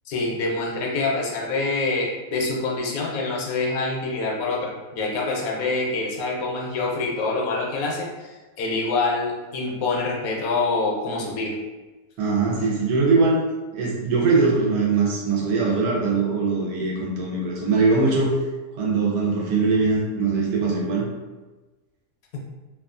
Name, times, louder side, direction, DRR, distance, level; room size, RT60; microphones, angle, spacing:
voice 1, 0.1-11.6, left 3 dB, 75° left, -2 dB, 1.0 m, -26 dB
voice 2, 12.2-13.4 13.7-18.4 18.8-21.1, right 4 dB, 85° right, -4 dB, 1.2 m, -21 dB
3.0 x 2.3 x 2.4 m, 1.2 s
omnidirectional pair, 1.6 m